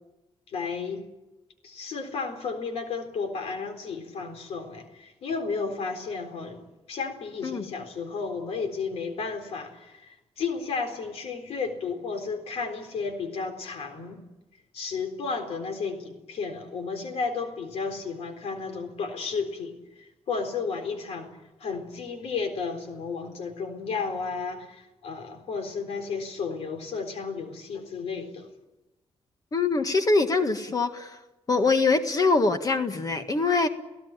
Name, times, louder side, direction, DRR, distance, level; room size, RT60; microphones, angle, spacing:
voice 1, 0.5-1.1 1.6-14.2 14.7-28.5, left 5 dB, 85° left, 6 dB, 3.9 m, -33 dB
voice 2, 29.5-31.2 31.5-33.7, left 3 dB, 35° left, 7 dB, 1.8 m, -23 dB
29.0 x 16.5 x 9.0 m, 1.1 s
cardioid pair, 95°, 10 cm